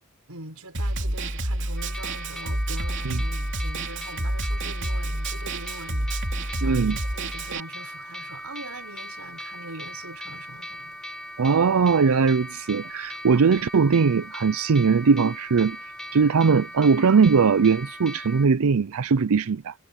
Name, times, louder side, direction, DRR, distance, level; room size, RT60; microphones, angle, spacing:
voice 1, 0.3-11.0, right 2 dB, 90° right, 6.1 m, -42 dB
Snare drum, 0.7-7.6, right 1 dB, 55° right, 3.1 m, -29 dB
sound 1, 1.8-18.5, equal, 5° left, 3.9 m, -39 dB
voice 2, 6.6-7.0 11.4-19.7, right 5 dB, 75° right, 0.5 m, -20 dB
head